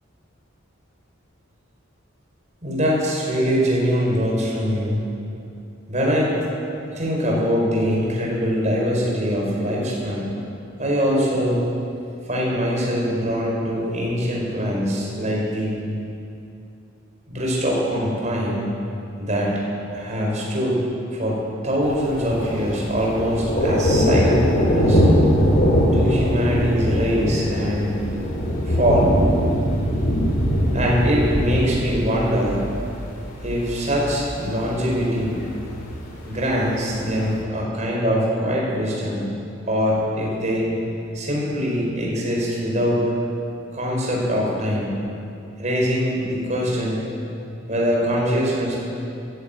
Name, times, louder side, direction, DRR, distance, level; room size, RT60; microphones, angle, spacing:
voice 1, 2.6-5.0 5.9-6.3 6.9-10.3 10.8-11.7 12.3-15.8 17.3-18.7 19.2-19.5 19.9-20.8 21.1-25.0 25.9-27.9 28.7-29.1 30.7-32.6 33.4-35.4 36.3-39.3 39.7-40.7 41.1-43.0 43.7-44.9 45.6-47.0 47.7-48.8, equal, 40° right, -3 dB, 4.6 m, -23 dB
Thunder, 21.8-37.4, equal, 50° left, 3.2 m, -22 dB
13.5 x 11.5 x 8.9 m, 2.6 s
head